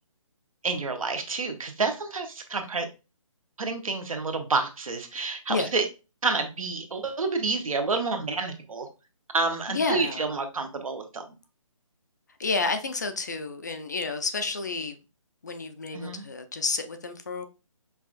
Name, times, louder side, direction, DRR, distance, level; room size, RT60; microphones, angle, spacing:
voice 1, 0.6-2.9 3.6-5.8 6.2-8.9 9.3-11.4 15.9-16.3, right 3 dB, 80° right, 0.9 m, -29 dB
voice 2, 9.7-10.2 12.4-15.0 15.4-17.5, left 4 dB, 35° left, 0.3 m, -30 dB
5.6 x 2.4 x 2.4 m
hypercardioid pair, 165°, 17 cm